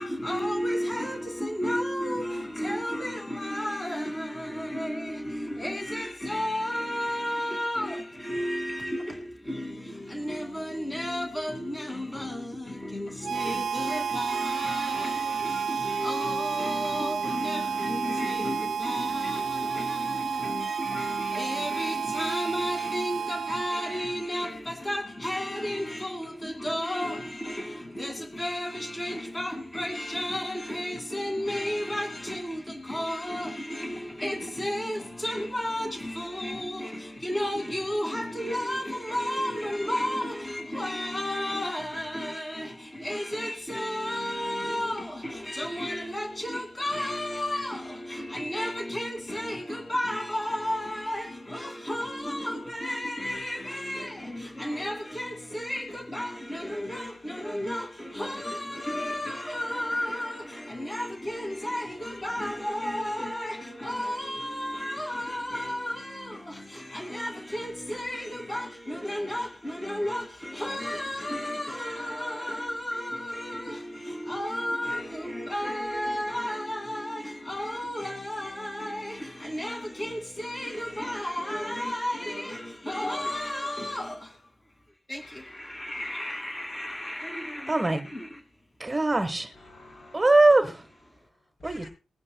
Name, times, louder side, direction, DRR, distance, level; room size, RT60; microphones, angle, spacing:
voice 1, 0.0-84.5 85.1-88.4, left 1 dB, 15° left, 2.2 m, -33 dB
Harmonica, 13.2-24.3, right 7 dB, 70° right, 0.4 m, -31 dB
voice 2, 87.7-88.1 88.8-89.5 90.1-90.8 91.6-91.9, right 2 dB, 20° right, 1.2 m, -22 dB
voice 3, 89.5-90.5 91.0-91.9, left 2 dB, 55° left, 5.7 m, -51 dB
21.5 x 9.8 x 2.2 m
wide cardioid pair, 115°, 0 cm